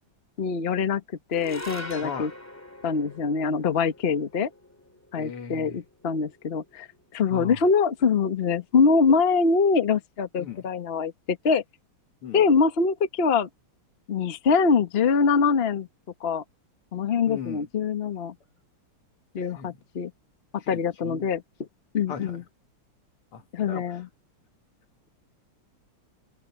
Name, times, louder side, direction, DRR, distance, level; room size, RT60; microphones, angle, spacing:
voice 1, 0.4-1.0 1.3-2.3 2.8-4.5 5.1-6.9 7.1-11.6 12.3-13.5 14.1-15.9 16.2-16.4 16.9-18.3 19.3-20.1 20.5-21.4 21.9-22.4 23.5-24.1, left 5 dB, 35° left, 1.1 m, -24 dB
sound 1, 1.3-7.8, left 1 dB, 5° left, 2.0 m, -44 dB
voice 2, 5.1-5.8 7.3-7.6 10.4-10.6 12.2-12.4 17.3-17.7 19.6-19.8 20.7-21.3 22.1-22.4 23.3-23.8, left 7 dB, 85° left, 2.8 m, -37 dB
open air
omnidirectional pair, 2.4 m